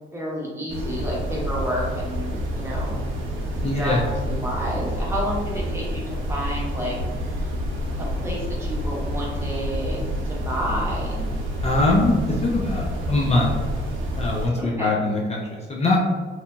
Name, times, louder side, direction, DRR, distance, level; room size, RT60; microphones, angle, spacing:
voice 1, 0.1-3.0 3.7-7.0 7.2-7.4 8.0-10.0 10.2-11.3 14.6-14.9, equal, 15° right, -5 dB, 0.9 m, -30 dB
sound 1, 0.7-14.5, equal, 85° right, 0.6 m, -28 dB
voice 2, 3.6-4.1 11.6-13.5 14.2-16.1, left 2 dB, 35° left, -2 dB, 0.4 m, -22 dB
2.7 x 2.7 x 2.2 m, 1.5 s
cardioid pair, 90°, 20 cm